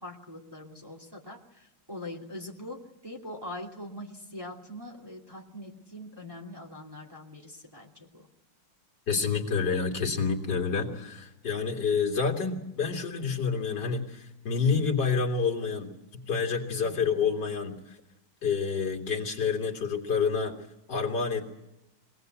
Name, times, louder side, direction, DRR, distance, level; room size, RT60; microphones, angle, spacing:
voice 1, 0.0-8.3 16.8-17.3, left 1 dB, 10° right, 0 dB, 2.6 m, -43 dB
voice 2, 9.1-15.9 16.3-18.0 18.4-20.6 20.9-21.5, left 5 dB, 55° left, 1 dB, 3.0 m, -28 dB
24.0 x 18.5 x 8.1 m, 0.92 s
omnidirectional pair, 2.2 m